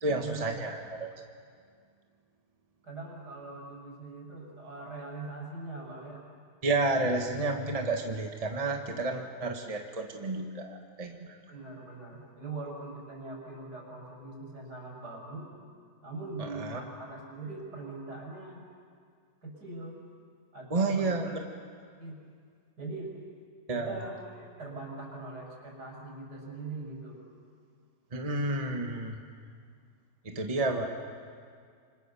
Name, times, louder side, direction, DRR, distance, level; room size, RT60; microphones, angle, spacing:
voice 1, 0.0-1.1 6.6-11.2 16.6-16.8 20.7-21.4 23.7-24.0 28.1-29.2 30.2-30.9, right 2 dB, 20° right, 2 dB, 1.6 m, -30 dB
voice 2, 2.8-6.2 11.5-15.5 16.0-18.6 19.4-20.0 20.5-21.1 22.0-22.2 22.8-23.2 23.7-27.2, right 3 dB, 80° right, -2 dB, 6.9 m, -41 dB
27.5 x 25.5 x 7.1 m, 2.1 s
omnidirectional pair, 1.7 m